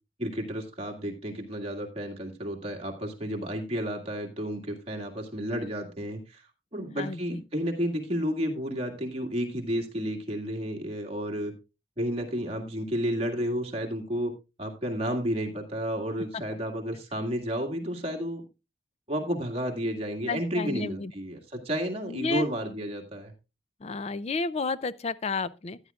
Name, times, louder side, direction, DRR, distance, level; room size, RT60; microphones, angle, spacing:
voice 1, 0.2-6.4 6.7-11.5 12.0-14.3 14.6-18.4 19.1-23.3, equal, 35° right, 2.0 m, -31 dB
voice 2, 20.3-21.1 22.1-22.5 23.8-25.8, left 3 dB, 35° left, 0.4 m, -31 dB
14.5 x 9.7 x 2.4 m
head